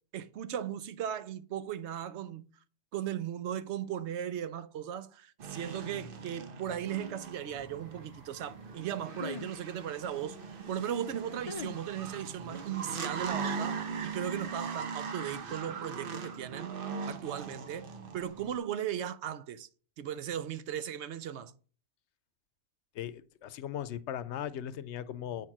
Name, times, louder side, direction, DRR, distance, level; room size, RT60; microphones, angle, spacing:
voice 1, 0.1-2.5 2.9-10.4 10.7-16.7 17.1-17.9 18.1-19.7 20.0-21.5, right 10 dB, 85° right, 0.9 m, -37 dB
sound 1, 5.4-18.6, right 5 dB, 55° right, 1.0 m, -40 dB
sound 2, 7.0-13.0, left 5 dB, 45° left, 0.5 m, -48 dB
voice 2, 22.9-25.5, left 10 dB, 90° left, 0.9 m, -38 dB
8.3 x 4.4 x 5.9 m
omnidirectional pair, 1.1 m